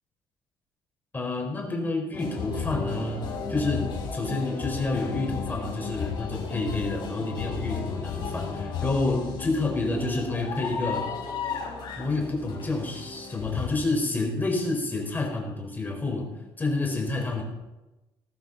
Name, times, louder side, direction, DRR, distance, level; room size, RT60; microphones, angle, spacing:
voice 1, 1.1-3.2 3.5-11.1 12.0-16.3 16.6-17.4, left 2 dB, 20° left, 1 dB, 5.0 m, -29 dB
sound 1, 2.1-13.7, left 5 dB, 55° left, 5.5 m, -34 dB
20.0 x 14.5 x 4.3 m, 1.1 s
cardioid pair, 135°, 9 cm